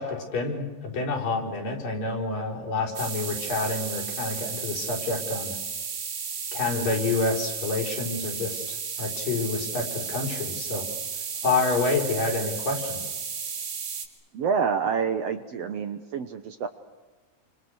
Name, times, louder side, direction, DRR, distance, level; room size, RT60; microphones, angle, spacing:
voice 1, 0.0-5.6 6.5-10.9 11.4-13.0, left 3 dB, 75° left, 1 dB, 6.3 m, -28 dB
sound 1, 3.0-14.1, right 6 dB, 85° right, 4.4 m, -33 dB
voice 2, 14.3-16.7, right 6 dB, 60° right, 8 dB, 1.8 m, -27 dB
29.0 x 26.0 x 6.5 m, 1.2 s
omnidirectional pair, 3.9 m